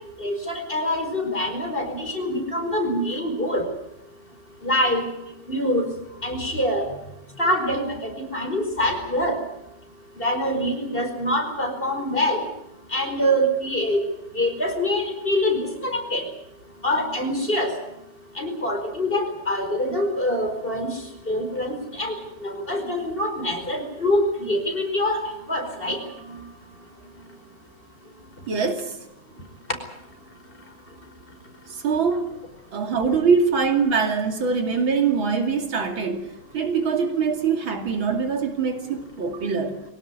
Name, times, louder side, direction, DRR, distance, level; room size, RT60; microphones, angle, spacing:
voice 1, 0.2-3.6 4.6-5.0 5.5-5.9 6.2-6.9 7.4-9.4 10.2-12.5 12.9-14.0 14.3-16.2 16.8-17.7 18.4-20.9 21.3-22.2 22.4-25.2 25.5-26.0, left 1 dB, 25° left, 4 dB, 5.2 m, -24 dB
voice 2, 28.5-29.0 31.7-32.3 32.7-39.8, right 5 dB, 85° right, 5 dB, 3.4 m, -23 dB
23.0 x 18.0 x 9.7 m, 0.85 s
omnidirectional pair, 2.1 m